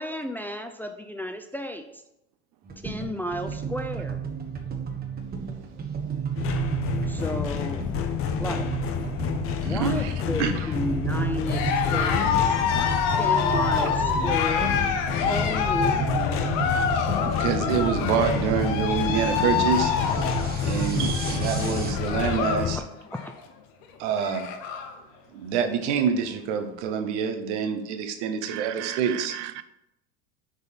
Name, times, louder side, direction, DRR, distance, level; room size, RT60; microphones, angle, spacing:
voice 1, 0.0-2.0 2.8-4.2 7.1-7.8 8.4-8.7 9.6-11.6 11.9-12.3 13.1-14.9 15.3-16.1 22.7-22.9 23.1-23.3, left 1 dB, 5° left, 6 dB, 0.4 m, -33 dB
sound 1, 2.6-21.9, right 6 dB, 25° right, 1.3 m, -32 dB
sound 2, 6.4-22.8, left 9 dB, 40° left, 0.7 m, -30 dB
voice 2, 9.6-10.1 10.4-10.7 17.2-19.9 20.6-22.8 24.0-24.5 25.3-29.4, right 7 dB, 80° right, 7 dB, 1.0 m, -26 dB
Cheering, 11.4-22.7 23.0-23.4 23.8-23.9 24.1-24.9, left 7 dB, 65° left, 1.0 m, -27 dB
voice 3, 28.4-29.6, right 15 dB, 55° right, 12 dB, 0.6 m, -36 dB
6.6 x 4.0 x 5.2 m, 0.87 s
supercardioid pair, 100°, 34 cm